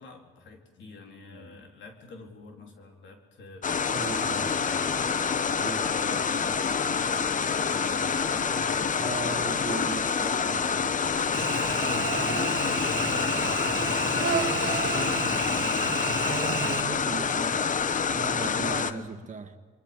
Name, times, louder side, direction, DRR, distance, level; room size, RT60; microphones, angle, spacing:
voice 1, 0.0-5.2 5.9-10.1 11.3-15.5 18.4-19.3, left 2 dB, 70° left, 3 dB, 3.9 m, -45 dB
sound 1, 3.6-18.9, left 6 dB, 40° left, 1.1 m, -27 dB
voice 2, 3.9-4.7 5.6-5.9 9.0-11.0 16.2-19.5, right 5 dB, 40° right, 7 dB, 1.9 m, -38 dB
Cricket / Buzz, 11.3-16.8, right 7 dB, 60° right, 2.5 m, -32 dB
27.5 x 23.0 x 5.3 m, 1.5 s
cardioid pair, 90°, 20 cm